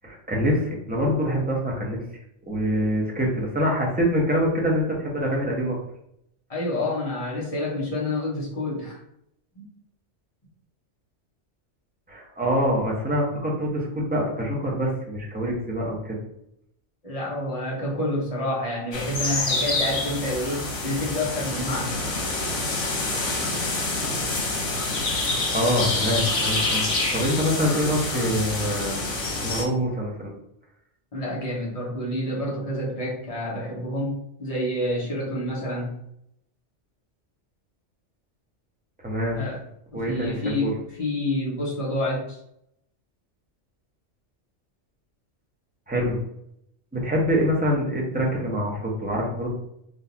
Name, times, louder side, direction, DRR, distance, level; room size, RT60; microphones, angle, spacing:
voice 1, 0.0-2.0 2.5-5.8 12.1-16.2 25.5-26.8 27.1-29.0 29.4-30.3 39.0-39.4 39.9-40.7 45.9-46.2 46.9-49.6, equal, 10° right, -3 dB, 0.7 m, -25 dB
voice 2, 6.5-9.0 9.5-9.6 17.0-22.0 31.1-36.0 39.3-39.6 39.9-40.7 41.0-42.4, left 1 dB, 30° left, -4 dB, 1.1 m, -28 dB
sound 1, 18.9-29.6, left 2 dB, 80° left, 1.2 m, -27 dB
3.7 x 2.6 x 2.8 m, 0.75 s
omnidirectional pair, 1.2 m